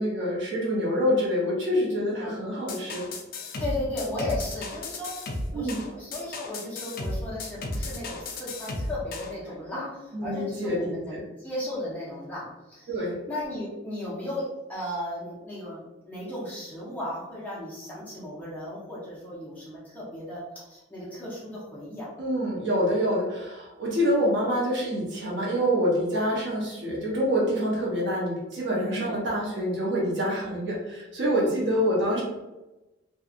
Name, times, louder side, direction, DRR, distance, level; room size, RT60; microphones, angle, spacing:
voice 1, 0.0-3.1 5.5-5.8 9.7-9.8 10.1-10.9 12.9-13.2 22.2-32.2, equal, 65° right, -4 dB, 0.9 m, -26 dB
sound 1, 2.7-9.3, left 2 dB, 45° left, 0.3 m, -34 dB
voice 2, 3.6-5.1 5.5-14.4 14.7-22.1 28.9-29.2 31.4-31.6, left 1 dB, 10° left, -8 dB, 0.7 m, -35 dB
2.7 x 2.3 x 2.4 m, 1.0 s
head